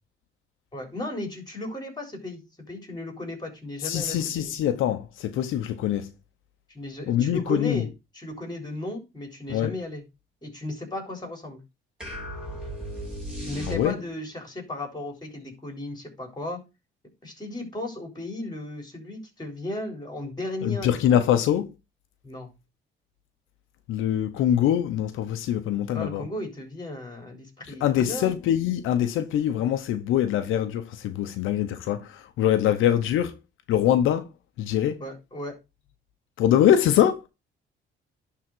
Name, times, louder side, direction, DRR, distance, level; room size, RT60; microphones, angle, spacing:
voice 1, 0.7-2.4 2.7-4.5 6.7-7.9 8.2-10.0 10.4-11.6 13.5-16.6 17.2-21.0 22.2-22.5 25.9-28.3 35.0-35.6, left 1 dB, 20° left, 3.9 m, -35 dB
voice 2, 3.8-6.1 7.1-7.8 9.5-9.7 13.7-14.0 20.6-21.7 23.9-26.3 27.7-33.3 33.7-34.3 34.6-35.0 36.4-37.3, left 10 dB, 90° left, 0.8 m, -23 dB
sound 1, 12.0-14.3, equal, 5° right, 4.4 m, -36 dB
11.0 x 3.9 x 4.5 m
cardioid pair, 90°, 20 cm